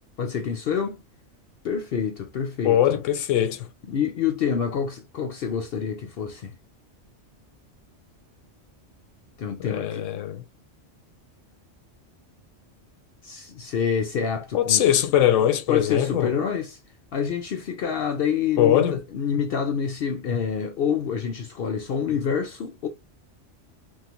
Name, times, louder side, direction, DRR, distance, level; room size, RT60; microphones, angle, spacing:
voice 1, 0.2-1.0 1.6-3.0 3.9-6.5 9.4-10.1 13.2-14.9 15.7-16.8 17.1-22.9, left 7 dB, 60° left, 0.7 m, -27 dB
voice 2, 2.6-3.7 9.6-10.4 14.5-16.3 18.6-19.0, left 11 dB, 85° left, 0.9 m, -21 dB
3.0 x 2.0 x 2.9 m
omnidirectional pair, 1.3 m